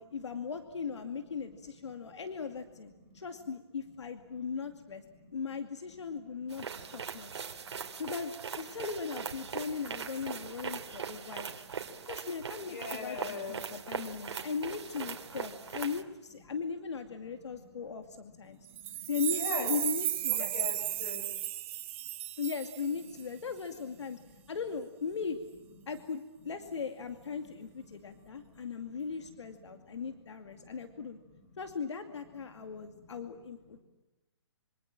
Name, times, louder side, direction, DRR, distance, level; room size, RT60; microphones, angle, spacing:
voice 1, 0.0-5.0 5.3-6.7 6.9-7.5 8.0-11.5 12.1-18.6 19.1-20.6 22.4-24.2 24.5-25.4 25.9-31.2 31.6-33.8, left 6 dB, 80° left, 7 dB, 2.4 m, -38 dB
sound 1, 6.5-16.0, right 6 dB, 70° right, 3.0 m, -41 dB
voice 2, 6.6-7.3 7.5-7.9 10.4-11.4 11.7-12.1 12.6-13.8 14.3-14.5 17.5-19.7 20.4-21.3 24.4-24.5 25.8-26.0 26.4-26.5 27.5-30.2 30.5-31.6 32.7-33.3 33.7-33.8, left 5 dB, 35° left, 5 dB, 7.1 m, -46 dB
sound 2, 18.8-23.2, right 14 dB, 25° right, 1.2 m, -34 dB
27.0 x 25.5 x 7.5 m, 1.0 s
hypercardioid pair, 170°, 15 cm